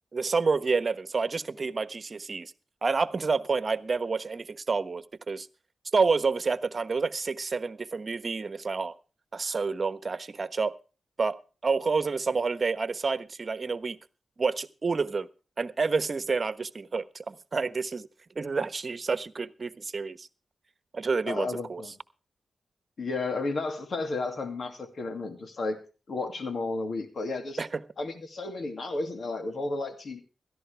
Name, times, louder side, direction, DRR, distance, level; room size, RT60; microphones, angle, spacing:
voice 1, 0.1-2.5 2.8-5.5 5.9-8.9 9.3-10.7 11.2-11.4 11.6-14.0 14.4-15.3 15.6-18.1 18.3-20.3 20.9-21.8 27.6-27.8, right 4 dB, 50° right, 13 dB, 1.2 m, -29 dB
voice 2, 21.3-21.9 23.0-25.8 26.1-27.6 28.0-30.2, left 3 dB, 65° left, 6 dB, 2.5 m, -32 dB
16.5 x 14.0 x 3.4 m, 0.34 s
cardioid pair, 60°, 0 cm